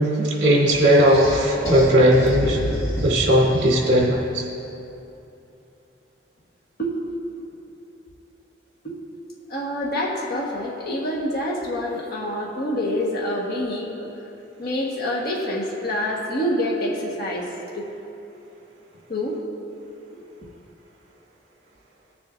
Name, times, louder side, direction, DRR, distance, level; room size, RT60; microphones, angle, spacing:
voice 1, 0.0-2.6 3.0-4.5, equal, 60° right, -3 dB, 2.4 m, -17 dB
sound 1, 0.7-4.3, right 1 dB, 20° left, 1.5 m, -29 dB
voice 2, 9.5-14.1 14.6-17.9 19.1-19.4, left 1 dB, 55° left, -3 dB, 1.4 m, -26 dB
21.0 x 7.2 x 2.6 m, 2.9 s
head